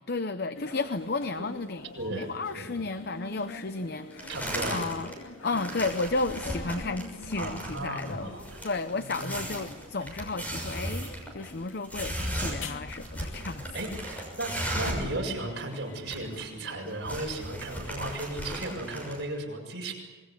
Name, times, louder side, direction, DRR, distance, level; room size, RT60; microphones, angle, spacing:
voice 1, 0.0-5.1 5.4-8.3 8.6-11.1 11.3-13.6, left 3 dB, 50° left, 11 dB, 0.7 m, -33 dB
sound 1, 0.5-17.0, left 2 dB, 80° left, 2.7 m, -46 dB
voice 2, 2.0-2.8 4.3-4.8 7.4-8.6 9.0-9.4 13.7-19.9, right 1 dB, 55° right, 0 dB, 6.9 m, -35 dB
sound 2, 4.2-5.1 5.4-15.1 15.4-15.5 15.7-16.4 16.7-19.2, right 1 dB, 10° left, 6.4 m, -36 dB
26.5 x 21.0 x 8.3 m, 1.3 s
head